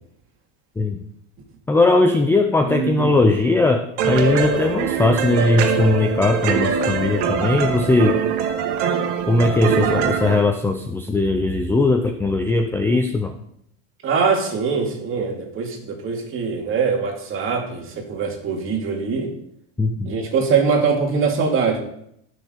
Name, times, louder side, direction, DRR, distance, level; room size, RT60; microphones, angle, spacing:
voice 1, 1.7-8.2 9.3-13.3 19.8-20.1, left 2 dB, 5° left, 5 dB, 0.5 m, -19 dB
voice 2, 2.7-3.2 14.0-19.3 20.1-21.8, right 5 dB, 35° right, 1 dB, 2.5 m, -22 dB
sound 1, 4.0-10.4, right 6 dB, 60° right, 2.0 m, -22 dB
Bowed string instrument, 4.1-7.4, right 8 dB, 85° right, 2.2 m, -39 dB
18.5 x 6.4 x 3.9 m, 0.73 s
supercardioid pair, 140°, 37 cm